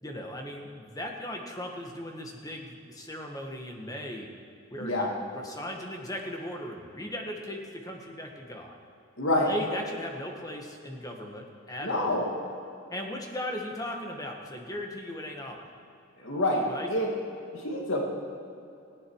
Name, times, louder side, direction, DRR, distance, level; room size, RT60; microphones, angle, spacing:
voice 1, 0.0-4.3 4.7-8.8 9.3-12.2 12.9-15.7 16.7-16.9, left 1 dB, 15° left, 2 dB, 1.7 m, -38 dB
voice 2, 9.2-9.5 11.8-12.3 16.2-17.1 17.5-18.1, left 1 dB, 70° left, 0 dB, 2.3 m, -27 dB
18.5 x 16.5 x 4.8 m, 2.6 s
head